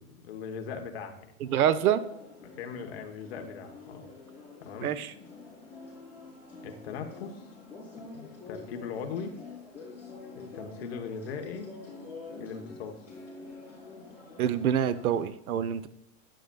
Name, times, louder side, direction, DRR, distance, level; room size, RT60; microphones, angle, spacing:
voice 1, 0.0-1.4 2.6-4.1 4.6-4.9 6.6-7.4 8.1-9.3 10.3-11.7 12.4-13.0, left 6 dB, 45° left, 5 dB, 1.0 m, -39 dB
sound 1, 1.4-15.2, left 3 dB, 5° right, 3.6 m, -47 dB
voice 2, 1.4-2.0 4.8-5.1 14.4-15.9, right 9 dB, 85° right, 15 dB, 0.8 m, -26 dB
10.0 x 10.0 x 2.2 m, 0.74 s
supercardioid pair, 175°, 43 cm